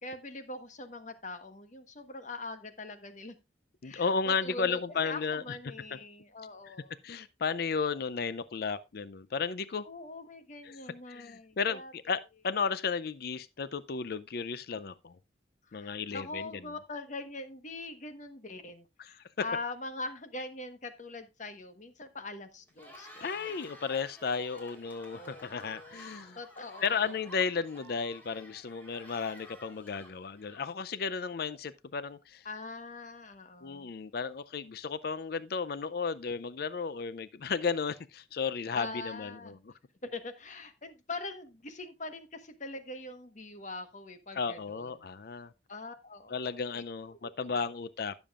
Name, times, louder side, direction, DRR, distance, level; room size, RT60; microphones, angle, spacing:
voice 1, 0.0-3.3 3.8-7.0 9.8-11.9 15.7-23.7 25.1-26.0 26.3-27.1 32.4-33.9 38.7-39.6 40.1-44.9 45.7-46.3 46.7-46.8 47.2-47.6, left 2 dB, 45° left, 1.2 m, -43 dB
voice 2, 3.8-5.6 6.6-6.8 7.0-9.9 10.6-10.8 11.1-15.2 15.7-16.5 19.0-19.1 23.2-26.4 26.8-32.5 33.6-39.7 44.3-45.5 46.3-48.1, left 5 dB, 60° left, 0.5 m, -34 dB
Cheering, 22.6-30.9, equal, 10° left, 3.6 m, -52 dB
15.0 x 7.1 x 2.4 m
head